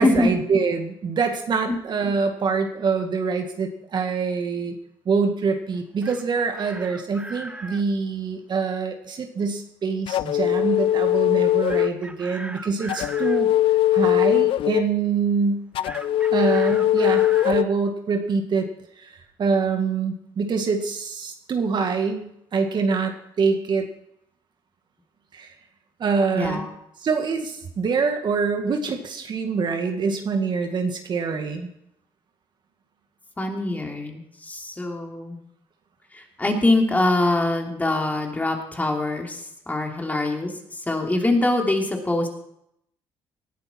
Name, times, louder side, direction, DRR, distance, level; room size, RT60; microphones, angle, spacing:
voice 1, 0.0-4.7 5.1-13.5 13.9-15.6 16.3-18.7 19.0-23.9 25.3-25.5 26.0-26.7 27.0-31.7, right 5 dB, 50° right, 5 dB, 2.0 m, -25 dB
Chicken rooster, 5.8-7.8 11.7-13.4 15.8-17.6, right 1 dB, 10° right, 1.2 m, -38 dB
sound 1, 10.1-12.0 12.9-14.9 15.7-17.6, left 13 dB, 70° left, 0.5 m, -20 dB
voice 2, 26.3-26.7 33.4-35.4 36.1-42.3, left 2 dB, 15° left, 1 dB, 3.0 m, -24 dB
19.0 x 10.5 x 4.5 m, 0.76 s
cardioid pair, 85°, 9 cm